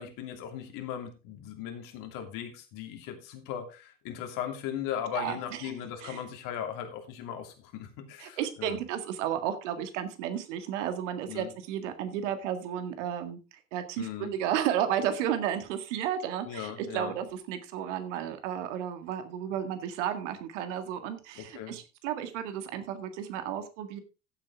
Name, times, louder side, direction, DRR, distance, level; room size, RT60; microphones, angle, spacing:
voice 1, 0.0-8.8 11.3-11.5 14.0-14.3 16.4-17.1 21.4-21.8, left 9 dB, 55° left, 5 dB, 2.8 m, -38 dB
voice 2, 5.1-5.7 6.0-6.2 8.2-13.4 13.7-24.0, right 10 dB, 65° right, 9 dB, 1.9 m, -33 dB
14.5 x 8.1 x 3.5 m, 0.31 s
figure-of-eight pair, 70°, 39 cm